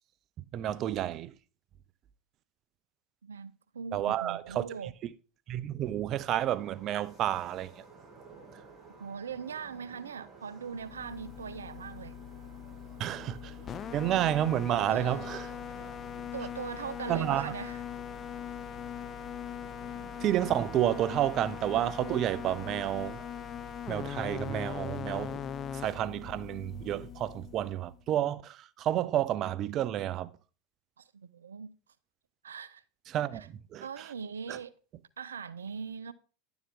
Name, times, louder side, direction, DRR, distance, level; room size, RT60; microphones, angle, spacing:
voice 1, 0.4-1.3 3.9-5.1 5.5-7.8 13.0-13.5 13.9-15.5 17.1-17.5 20.2-23.2 23.9-25.4 25.7-30.3 33.1-34.1 34.5-34.6, right 12 dB, 45° right, 0.6 m, -30 dB
voice 2, 3.2-4.9 9.0-12.1 14.9-15.2 15.7-15.8 16.3-17.8 31.0-31.7 32.4-32.8 33.3-33.5 33.8-34.7 35.2-36.1, right 6 dB, 90° right, 0.5 m, -41 dB
sound 1, 6.5-23.2, right 4 dB, 20° right, 2.6 m, -54 dB
sound 2, 10.8-28.0, left 8 dB, 35° left, 0.7 m, -41 dB
10.5 x 7.1 x 3.6 m
hypercardioid pair, 90°, 0 cm